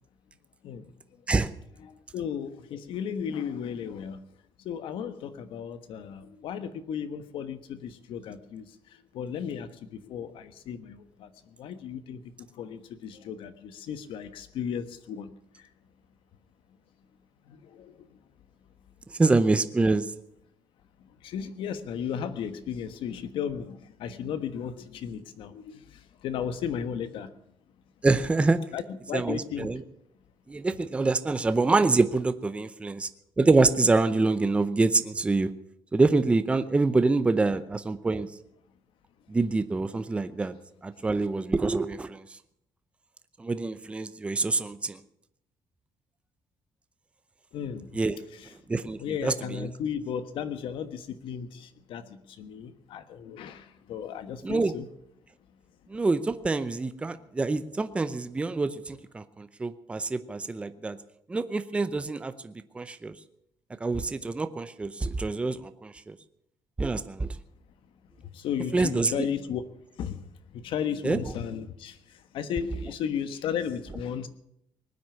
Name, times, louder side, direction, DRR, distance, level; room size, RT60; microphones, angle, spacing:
voice 1, 1.8-4.2 4.6-15.7 17.5-18.2 21.2-27.3 28.7-29.9 47.5-47.9 48.4-48.5 49.0-54.9 68.2-69.6 70.0-70.2 70.5-74.3, left 8 dB, 75° left, 11 dB, 1.3 m, -35 dB
voice 2, 19.2-20.0 28.0-28.6 29.1-29.8 30.5-33.1 33.4-35.5 35.9-38.3 39.3-40.5 40.8-42.2 43.4-45.0 47.9-48.2 48.7-49.7 54.4-54.7 55.9-61.0 61.3-63.1 63.8-66.1 66.8-67.3 68.7-69.3 71.0-71.2, right 3 dB, 15° right, 11 dB, 0.6 m, -26 dB
20.0 x 9.4 x 7.0 m, 0.76 s
cardioid pair, 170°, 9 cm